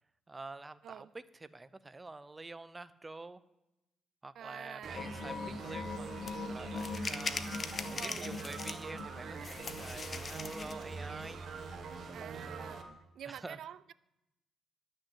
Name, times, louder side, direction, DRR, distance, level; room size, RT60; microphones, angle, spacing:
voice 1, 0.3-3.4 4.2-7.5 7.8-11.4 12.3-12.7 13.3-13.6, right 3 dB, 20° right, 0.6 m, -47 dB
voice 2, 4.4-5.1 7.9-8.3 12.1-13.9, right 10 dB, 70° right, 0.4 m, -47 dB
sound 1, 4.8-12.8, right 4 dB, 55° right, 1.7 m, -44 dB
sound 2, 4.9-11.3 11.6-11.7, left 4 dB, 60° left, 1.0 m, -44 dB
sound 3, 6.3-6.4 6.8-9.0 9.4-10.8, left 4 dB, 40° left, 0.9 m, -41 dB
11.5 x 6.5 x 8.1 m
cardioid pair, 90°, 0 cm